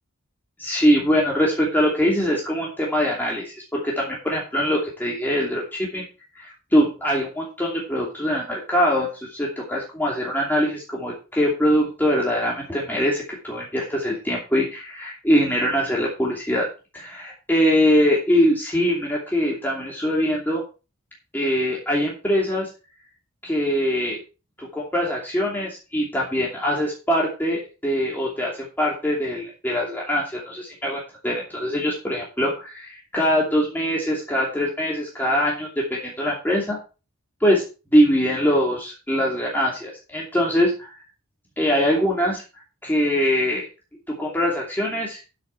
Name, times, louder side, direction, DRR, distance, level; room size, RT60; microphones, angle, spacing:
voice 1, 0.6-6.0 6.3-16.7 16.9-20.6 21.3-22.7 23.4-24.2 24.6-36.8 37.4-37.6 37.9-40.9 41.6-42.4 42.8-43.7 44.2-45.2, equal, 10° left, -4 dB, 2.7 m, -22 dB
12.0 x 6.4 x 4.6 m, 0.32 s
head